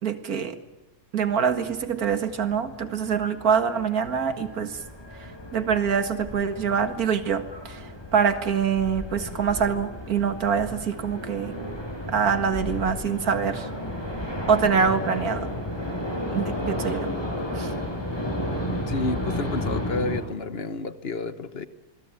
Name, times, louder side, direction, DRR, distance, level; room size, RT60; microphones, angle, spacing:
voice 1, 0.0-0.6 1.1-4.8 5.2-11.6 12.1-13.7 14.5-15.5 16.3-17.1 17.5-17.7, right 6 dB, 50° right, 10 dB, 2.1 m, -25 dB
sound 1, 1.2-20.2, left 1 dB, 10° left, 5.9 m, -33 dB
voice 2, 18.7-21.7, left 3 dB, 40° left, 13 dB, 1.1 m, -30 dB
26.5 x 22.0 x 9.1 m, 1.0 s
omnidirectional pair, 2.0 m